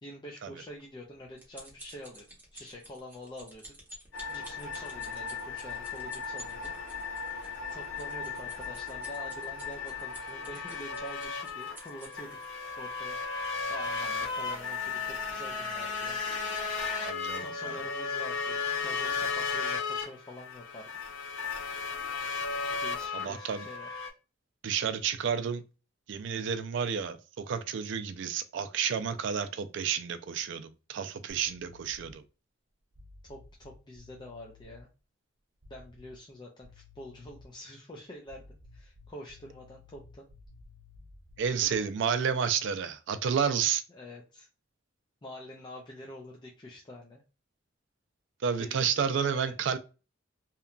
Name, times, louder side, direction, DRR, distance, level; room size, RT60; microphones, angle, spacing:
voice 1, 0.0-3.8 4.3-6.7 7.7-12.4 12.8-13.2 13.7-16.2 17.4-20.9 22.8-24.0 33.2-34.9 35.7-40.3 41.5-41.9 43.9-44.5 45.2-47.2 48.6-49.6, left 1 dB, 25° left, 0.4 m, -46 dB
sound 1, 0.8-12.5 13.1-13.3 13.6-13.7, right 1 dB, 10° right, 1.0 m, -51 dB
sound 2, 4.1-24.1, left 5 dB, 75° left, 0.6 m, -35 dB
voice 2, 17.0-17.8 23.1-23.7 24.6-25.6 26.1-32.2 41.4-43.8 48.4-49.8, right 7 dB, 70° right, 0.4 m, -31 dB
sound 3, 31.3-32.3 32.9-34.8 35.6-36.3 36.6-37.6 38.2-41.9, left 3 dB, 35° right, 0.6 m, -55 dB
2.9 x 2.2 x 2.4 m
head